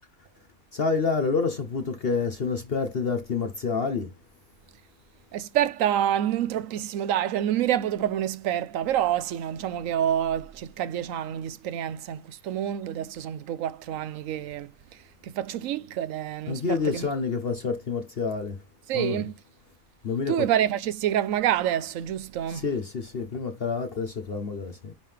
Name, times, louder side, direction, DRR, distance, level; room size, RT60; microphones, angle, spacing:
voice 1, 0.7-4.1 16.5-18.6 18.9-19.2 20.0-20.5 22.5-24.9, left 4 dB, 50° left, 1.1 m, -28 dB
voice 2, 5.3-17.1 18.9-19.4 20.3-22.6, right 11 dB, 75° right, 1.1 m, -27 dB
10.0 x 3.7 x 3.4 m
omnidirectional pair, 1.4 m